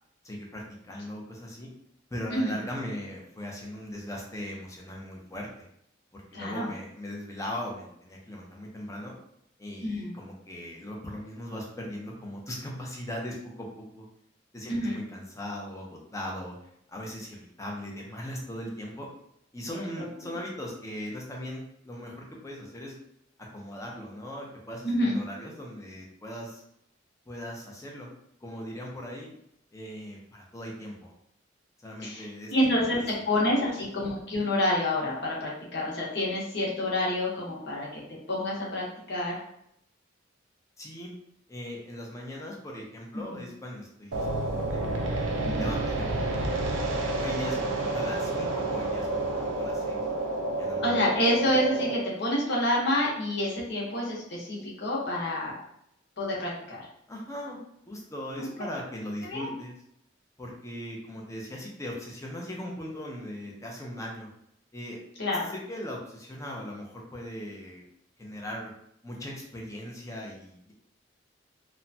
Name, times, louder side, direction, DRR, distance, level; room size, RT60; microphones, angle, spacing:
voice 1, 0.2-1.7 2.1-5.7 6.1-9.1 9.6-14.1 14.5-16.6 16.9-19.1 19.5-22.9 23.5-26.6 27.3-28.1 28.4-29.3 29.7-31.1 31.8-32.5 40.8-41.1 41.5-44.8 45.5-50.0 50.6-51.0 57.1-57.6 57.9-59.7 60.4-64.3 64.7-65.0 65.7-67.8 68.2-68.7 69.0-70.7, left 1 dB, 15° left, -1 dB, 0.6 m, -39 dB
voice 2, 6.3-6.7 9.8-10.1 14.7-15.0 19.7-20.1 24.8-25.2 32.0-39.4 43.1-43.4 45.4-45.7 50.8-55.5 56.2-56.9 58.4-58.7 59.2-59.5 65.2-65.5, left 1 dB, 60° left, -4 dB, 0.9 m, -28 dB
sound 1, 44.1-52.0, right 2 dB, 80° right, 0.5 m, -29 dB
3.0 x 2.2 x 2.6 m, 0.74 s
head